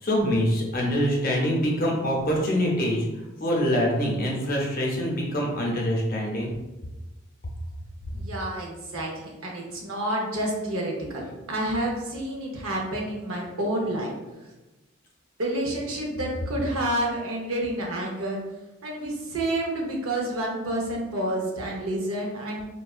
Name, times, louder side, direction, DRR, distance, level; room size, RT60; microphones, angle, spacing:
voice 1, 0.0-3.1 3.4-6.5, equal, 40° left, -2 dB, 0.6 m, -24 dB
voice 2, 8.1-11.2 11.5-14.1 15.4-18.4 18.8-22.7, right 1 dB, 80° right, -1 dB, 0.7 m, -29 dB
3.3 x 2.2 x 2.3 m, 1.0 s
head